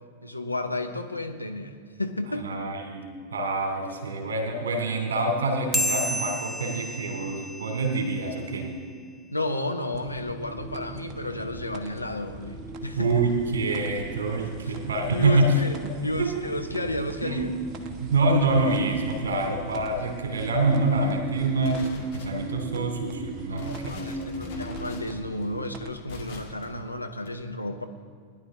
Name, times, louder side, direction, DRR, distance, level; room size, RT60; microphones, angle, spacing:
voice 1, 0.2-2.6 9.3-13.1 14.6-14.8 15.1-17.5 23.5-27.8, left 2 dB, 85° left, 6 dB, 0.8 m, -32 dB
voice 2, 2.4-8.8 13.0-15.6 15.8-15.9 16.2-16.3 17.2-17.4 18.0-24.7, right 2 dB, 65° right, 3 dB, 2.4 m, -26 dB
sound 1, 5.7-8.6, left 1 dB, 5° right, 0.6 m, -31 dB
sound 2, 9.9-25.9, right 2 dB, 35° right, 1.1 m, -41 dB
sound 3, 21.6-22.6 23.1-23.2 23.5-26.6 27.2-27.3, left 4 dB, 50° left, 2.4 m, -43 dB
17.0 x 11.0 x 3.6 m, 2.1 s
figure-of-eight pair, 90°, 0 cm